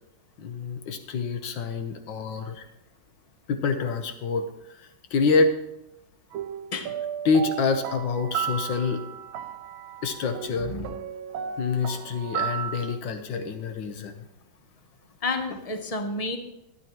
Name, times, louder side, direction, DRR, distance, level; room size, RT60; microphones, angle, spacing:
voice 1, 0.4-2.6 3.5-4.5 4.8-5.6 7.2-9.0 10.0-10.7 11.6-14.1, left 4 dB, 75° left, 7 dB, 1.7 m, -26 dB
sound 1, 6.3-13.0, right 8 dB, 85° right, 1.3 m, -34 dB
voice 2, 15.2-16.4, left 2 dB, 40° left, 6 dB, 0.5 m, -30 dB
12.5 x 10.5 x 3.1 m, 0.86 s
omnidirectional pair, 2.1 m